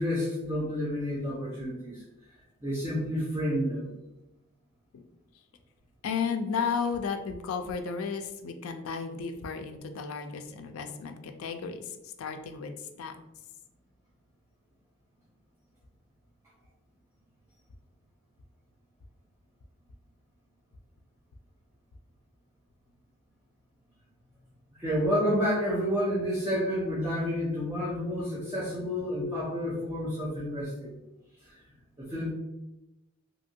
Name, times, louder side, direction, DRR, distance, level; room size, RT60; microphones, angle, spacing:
voice 1, 0.0-2.0 2.6-3.9 24.8-30.9 31.4-31.6 32.1-32.3, equal, 15° right, -9 dB, 0.6 m, -29 dB
voice 2, 6.0-13.2, left 5 dB, 75° left, 7 dB, 0.3 m, -34 dB
2.8 x 2.6 x 2.6 m, 0.97 s
head